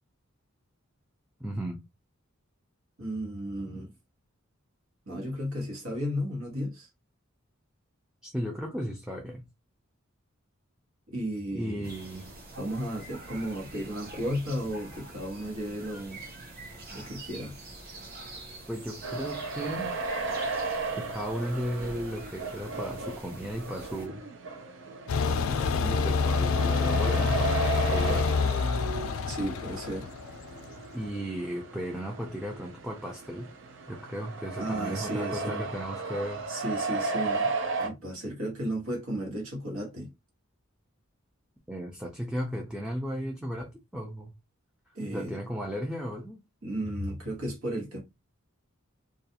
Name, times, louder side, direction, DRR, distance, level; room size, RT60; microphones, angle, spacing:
voice 1, 1.4-1.8 3.7-3.8 8.2-9.5 11.5-12.3 18.7-20.0 21.0-24.2 25.8-28.3 30.9-33.5 33.9-36.4 41.7-44.3 45.1-46.4, equal, 5° right, 0.4 m, -35 dB
voice 2, 3.0-3.9 5.1-6.9 11.1-11.9 12.5-16.2 16.9-17.5 29.3-30.1 34.5-35.7 36.5-37.5 37.8-40.1 44.9-45.4 46.6-48.0, equal, 90° right, 1.2 m, -34 dB
sound 1, 11.8-24.1, right 2 dB, 50° right, 0.9 m, -45 dB
sound 2, 19.0-37.9, right 3 dB, 65° right, 0.5 m, -35 dB
sound 3, 25.1-30.8, left 4 dB, 75° left, 0.4 m, -27 dB
2.4 x 2.3 x 2.8 m
head